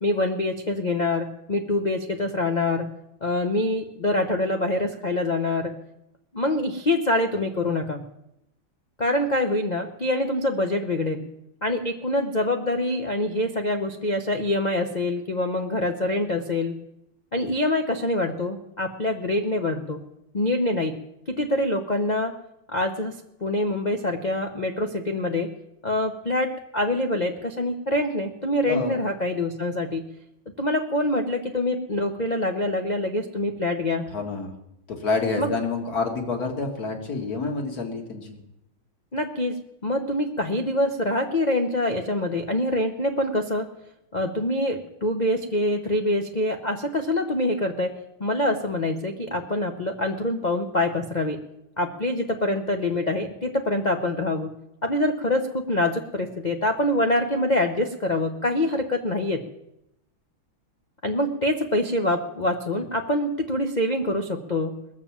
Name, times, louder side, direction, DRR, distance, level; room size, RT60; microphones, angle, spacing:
voice 1, 0.0-2.9 3.2-5.7 6.3-8.0 9.0-11.3 11.6-16.7 17.3-20.0 20.3-21.0 21.3-22.3 22.7-25.5 25.8-30.1 30.6-34.0 35.4-35.5 39.1-39.6 39.8-43.7 44.1-47.9 48.2-51.4 51.8-54.5 54.8-59.4 61.0-64.8, left 1 dB, 85° left, 4 dB, 0.4 m, -25 dB
voice 2, 34.1-34.5 34.9-38.4, left 3 dB, 45° left, 3 dB, 2.3 m, -28 dB
20.5 x 7.3 x 7.3 m, 0.84 s
omnidirectional pair, 2.3 m